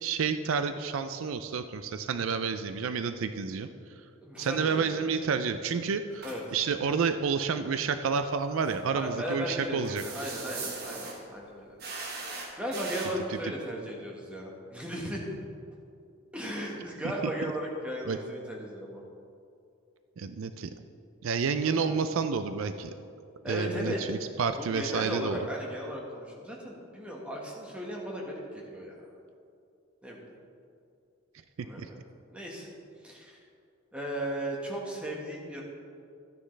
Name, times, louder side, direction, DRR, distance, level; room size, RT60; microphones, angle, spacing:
voice 1, 0.0-3.7 4.4-6.3 6.5-10.0 13.3-13.4 18.0-18.2 20.2-20.7 21.2-22.9 23.5-25.4 31.6-31.9, right 5 dB, 65° right, 9 dB, 0.4 m, -30 dB
voice 2, 4.2-4.9 6.2-6.4 8.9-11.8 12.6-15.2 16.3-19.0 21.6-22.0 23.4-24.0 24.6-29.1 30.0-30.2 31.6-32.0 32.3-32.7 33.0-33.4 33.9-35.6, equal, 5° right, -2 dB, 1.4 m, -36 dB
sound 1, 6.1-6.4 8.6-8.8 9.8-11.2 11.8-13.1, right 3 dB, 45° right, 1.3 m, -39 dB
13.0 x 9.7 x 3.3 m, 2.5 s
head